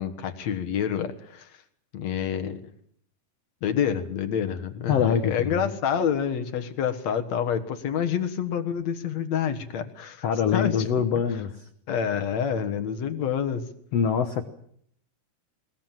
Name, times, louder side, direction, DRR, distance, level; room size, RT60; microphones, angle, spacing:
voice 1, 0.0-1.6 1.9-2.6 3.6-10.2 10.5-10.9 11.9-13.7, left 8 dB, 55° left, 8 dB, 2.1 m, -28 dB
voice 2, 4.9-5.7 10.2-11.6 13.9-14.4, left 7 dB, 85° left, 8 dB, 1.4 m, -24 dB
21.5 x 20.5 x 7.5 m, 0.66 s
omnidirectional pair, 4.6 m